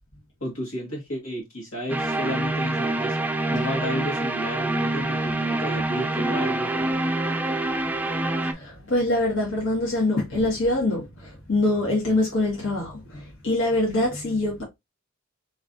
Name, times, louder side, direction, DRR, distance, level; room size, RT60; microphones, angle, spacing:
voice 1, 0.4-6.7, equal, 75° left, 1.7 m, -32 dB
sound 1, 1.9-8.5, right 2 dB, 10° right, 0.3 m, -26 dB
voice 2, 8.4-14.6, left 2 dB, 60° left, 1.5 m, -24 dB
4.2 x 3.0 x 2.6 m
head